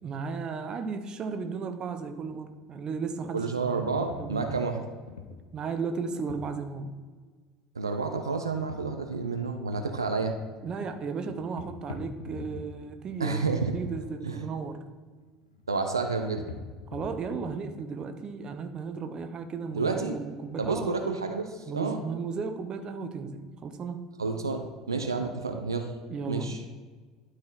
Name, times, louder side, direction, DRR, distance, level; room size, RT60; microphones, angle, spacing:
voice 1, 0.0-4.7 5.5-6.9 10.6-13.4 13.7-14.8 16.9-21.0 21.7-24.0 25.2-25.3 26.1-26.9, right 5 dB, 35° right, 7 dB, 0.8 m, -35 dB
sound 1, 2.2-2.3 2.5-3.5 3.8-5.6 6.3-6.6 8.5-9.2 9.4-9.9 10.3-10.5 10.8-11.0 11.3-12.9 13.1-13.7 15.2-15.8 16.1-18.1 18.5-19.8 20.0-20.2 20.5-20.7, left 4 dB, 85° left, 0.7 m, -45 dB
voice 2, 3.3-4.8 7.7-10.4 13.2-13.7 14.2-14.5 15.7-16.4 19.7-20.2 20.6-22.0 24.2-25.9 26.3-26.6, right 4 dB, 90° right, 5 dB, 0.5 m, -30 dB
12.0 x 4.1 x 4.0 m, 1.4 s
figure-of-eight pair, 70°, 2 cm